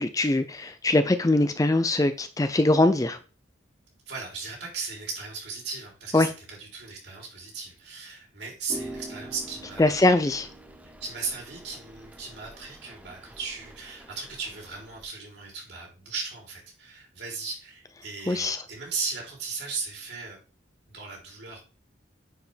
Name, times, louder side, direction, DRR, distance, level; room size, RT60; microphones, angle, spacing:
voice 1, 0.0-3.2 6.1-6.3 9.8-10.5 18.3-18.6, left 2 dB, 20° left, 0.4 m, -22 dB
voice 2, 4.1-10.0 11.0-20.4 20.9-21.6, right 4 dB, 65° right, 3.3 m, -37 dB
sound 1, 8.7-15.1, right 1 dB, 10° right, 0.8 m, -45 dB
9.5 x 5.0 x 3.4 m
head